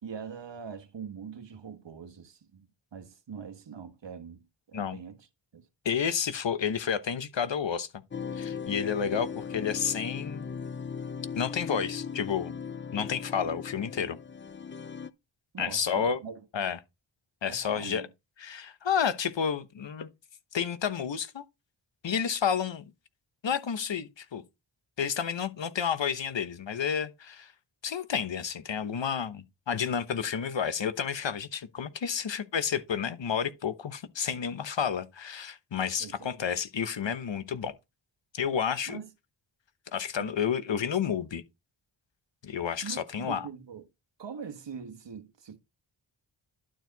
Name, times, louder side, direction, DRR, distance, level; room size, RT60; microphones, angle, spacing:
voice 1, 0.0-5.3 5.5-5.7 15.5-16.4 17.5-18.1 36.0-36.3 38.9-39.1 40.2-40.3 42.8-43.9 44.2-45.6, right 6 dB, 60° right, 1.4 m, -43 dB
voice 2, 5.8-7.9 8.3-10.5 11.3-12.5 12.9-14.2 15.6-16.2 16.5-16.8 17.4-18.0 18.4-20.1 20.5-21.4 22.0-22.8 23.4-24.4 25.0-27.5 27.8-37.7 38.3-39.0 39.9-41.4 42.4-43.5, left 7 dB, 65° left, 1.1 m, -30 dB
sound 1, 8.1-15.1, left 6 dB, 25° left, 0.5 m, -38 dB
11.5 x 4.6 x 4.0 m
cardioid pair, 55°, 48 cm